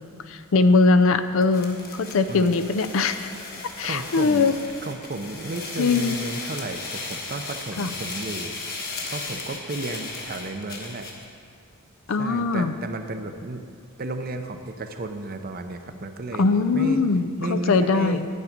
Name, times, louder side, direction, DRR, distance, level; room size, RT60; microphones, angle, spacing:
voice 1, 0.3-3.3 3.8-4.5 5.8-6.2 7.8-7.9 12.1-12.7 16.4-18.3, left 4 dB, 65° left, 10 dB, 0.4 m, -21 dB
sound 1, 1.4-11.2, left 3 dB, 45° left, 1.4 m, -36 dB
voice 2, 3.8-4.5 4.8-8.5 9.1-11.1 12.2-13.6 14.0-16.5 16.7-17.0 17.4-18.2, right 2 dB, 40° right, 7 dB, 0.6 m, -33 dB
9.3 x 8.6 x 5.2 m, 2.2 s
head